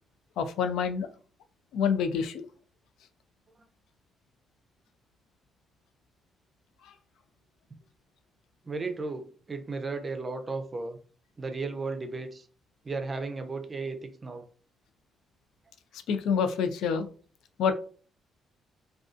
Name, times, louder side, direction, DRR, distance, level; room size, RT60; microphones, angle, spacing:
voice 1, 0.4-1.1 1.7-2.5 6.8-6.9 16.1-17.1 17.6-17.7, left 6 dB, 85° left, 7 dB, 0.3 m, -27 dB
voice 2, 8.6-11.0 11.4-12.5 12.8-14.4, right 3 dB, 30° right, 7 dB, 0.4 m, -35 dB
2.4 x 2.3 x 2.4 m, 0.40 s
cardioid pair, 90°, 0 cm